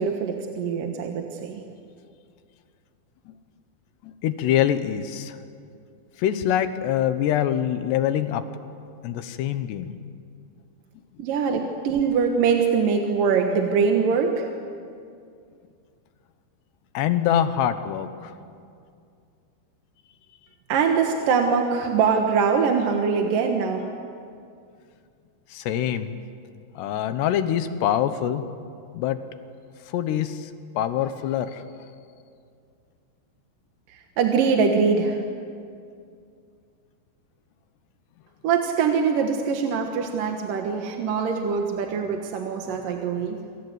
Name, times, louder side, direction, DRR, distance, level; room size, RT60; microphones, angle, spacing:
voice 1, 0.0-1.6 11.2-14.5 20.7-23.9 33.9-35.2 38.4-43.4, right 5 dB, 60° right, 3 dB, 2.7 m, -23 dB
voice 2, 4.0-5.4 6.2-8.4 9.0-9.9 16.9-18.3 25.5-26.2 26.8-28.4 28.9-29.2 29.9-30.5 30.8-31.6 42.7-42.8 43.2-43.3, left 10 dB, 75° left, 10 dB, 3.2 m, -24 dB
28.0 x 26.0 x 8.1 m, 2.4 s
omnidirectional pair, 5.0 m